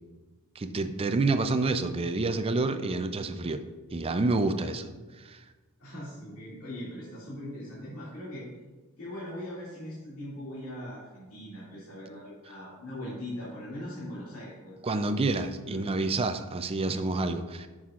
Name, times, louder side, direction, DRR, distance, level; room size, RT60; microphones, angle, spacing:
voice 1, 0.6-3.6 3.9-4.9 5.2-5.4 14.8-17.7, right 3 dB, 25° right, 8 dB, 0.4 m, -28 dB
voice 2, 5.8-8.5 9.0-15.8, left 1 dB, 65° left, -9 dB, 2.4 m, -41 dB
9.2 x 6.3 x 2.5 m, 1.3 s
head